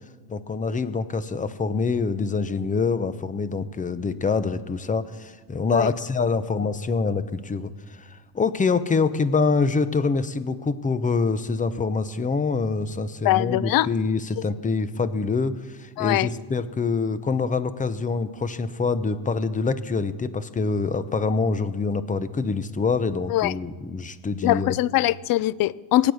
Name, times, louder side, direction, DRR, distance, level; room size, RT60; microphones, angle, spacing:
voice 1, 0.3-24.8, left 4 dB, 15° left, 0.8 m, -25 dB
voice 2, 13.2-13.9 14.4-14.5 16.0-16.3 23.3-23.5 24.4-26.1, left 15 dB, 50° left, 0.5 m, -22 dB
24.0 x 8.9 x 6.4 m
cardioid pair, 120°, 47 cm